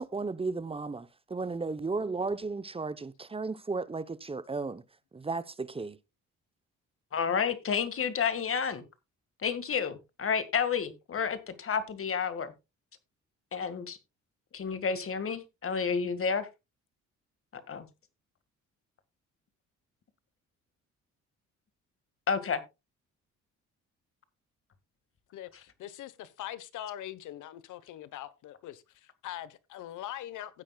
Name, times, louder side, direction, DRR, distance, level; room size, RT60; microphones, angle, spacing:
voice 1, 0.0-4.8 5.1-6.0, right 3 dB, 20° right, 0.8 m, -34 dB
voice 2, 7.1-8.8 9.4-12.5 13.5-14.0 14.5-16.5 17.5-17.9 22.3-22.6, left 6 dB, 45° left, 2.0 m, -30 dB
voice 3, 25.3-30.6, left 12 dB, 80° left, 1.2 m, -42 dB
16.0 x 8.7 x 2.3 m
cardioid pair, 90°, 30 cm